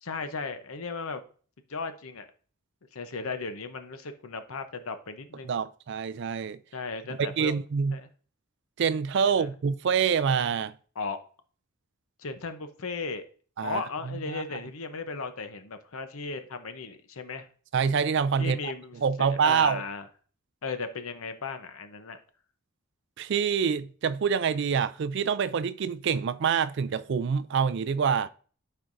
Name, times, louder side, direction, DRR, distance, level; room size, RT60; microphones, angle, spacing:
voice 1, 0.0-1.2 1.7-2.3 2.9-5.6 6.7-7.6 7.9-8.1 9.2-9.5 11.0-11.2 12.2-13.2 13.6-17.5 18.4-20.1 20.6-22.2, left 4 dB, 75° left, 0.8 m, -36 dB
voice 2, 5.4-6.6 7.4-8.0 8.8-10.7 13.6-13.8 14.3-14.4 17.7-19.8 23.2-28.3, right 6 dB, 55° right, 0.3 m, -26 dB
12.0 x 4.6 x 2.6 m
head